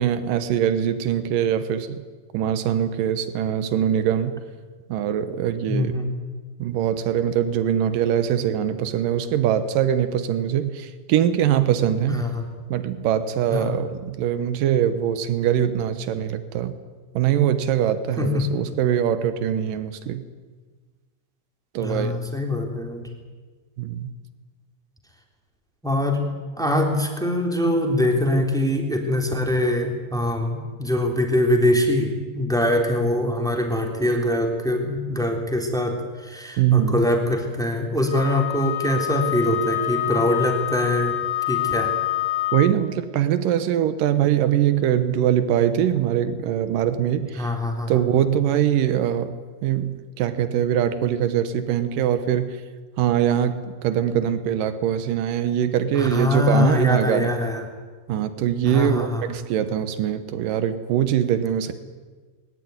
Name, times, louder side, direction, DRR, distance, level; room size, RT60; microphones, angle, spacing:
voice 1, 0.0-2.0 2.3-4.4 4.9-6.0 6.6-12.3 12.7-16.7 17.1-20.2 21.7-22.2 23.8-24.1 36.6-37.0 42.5-47.5 47.9-52.6 53.0-57.3 58.1-61.7, right 10 dB, 85° right, 11 dB, 1.9 m, -22 dB
voice 2, 5.7-6.1 12.1-12.4 13.5-13.7 18.2-18.3 21.8-23.0 25.8-26.2 26.6-41.1 41.5-41.9 47.4-48.0 55.9-57.6 58.7-59.2, left 1 dB, ahead, 2 dB, 2.4 m, -23 dB
Wind instrument woodwind instrument, 38.1-42.8, left 15 dB, 85° left, 5.0 m, -26 dB
22.0 x 19.5 x 9.5 m, 1.4 s
omnidirectional pair, 5.5 m